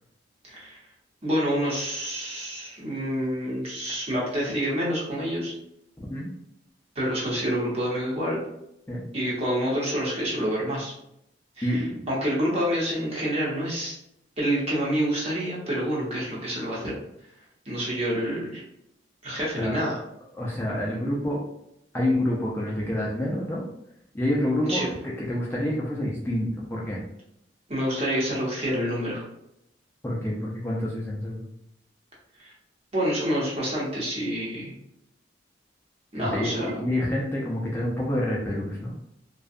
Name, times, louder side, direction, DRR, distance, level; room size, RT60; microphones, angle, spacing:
voice 1, 0.5-0.8 1.2-5.5 6.9-8.4 9.1-10.9 11.6-13.9 14.4-16.9 17.6-18.6 19.2-20.0 24.7-24.9 27.7-29.2 32.4-32.5 32.9-34.7 36.1-36.7, equal, 35° right, -5 dB, 0.9 m, -27 dB
voice 2, 11.6-12.1 19.6-19.8 20.4-21.4 21.9-23.6 24.1-27.0 30.0-31.5 36.1-38.9, left 1 dB, 15° left, -4 dB, 0.4 m, -28 dB
2.6 x 2.2 x 2.4 m, 0.79 s
head